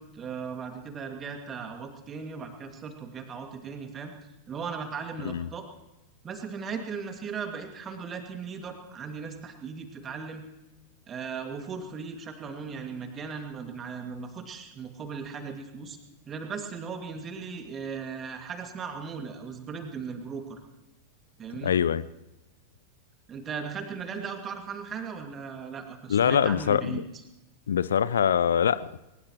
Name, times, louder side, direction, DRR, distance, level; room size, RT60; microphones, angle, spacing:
voice 1, 0.0-4.1 4.5-5.7 6.2-10.4 11.1-16.0 16.2-20.6 21.4-21.7 23.3-27.0, right 5 dB, 25° right, 5 dB, 2.2 m, -37 dB
voice 2, 21.6-22.0 26.1-27.0 27.7-29.0, left 8 dB, 65° left, 18 dB, 0.4 m, -24 dB
21.5 x 20.0 x 3.1 m, 0.99 s
figure-of-eight pair, 90°, 0 cm